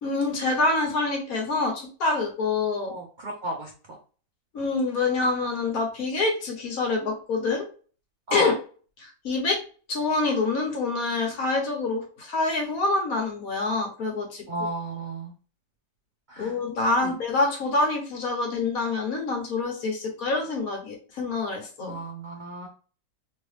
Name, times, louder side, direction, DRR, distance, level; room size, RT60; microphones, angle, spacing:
voice 1, 0.0-2.9 4.5-7.7 8.3-8.5 9.0-9.6 9.9-14.4 16.4-22.0, left 3 dB, 70° left, 0 dB, 1.6 m, -26 dB
voice 2, 2.8-3.7 8.3-8.5 14.5-15.3 16.3-16.5 17.0-17.1 21.8-22.7, right 1 dB, 60° right, 1 dB, 0.5 m, -33 dB
3.3 x 3.0 x 3.2 m, 0.39 s
omnidirectional pair, 1.6 m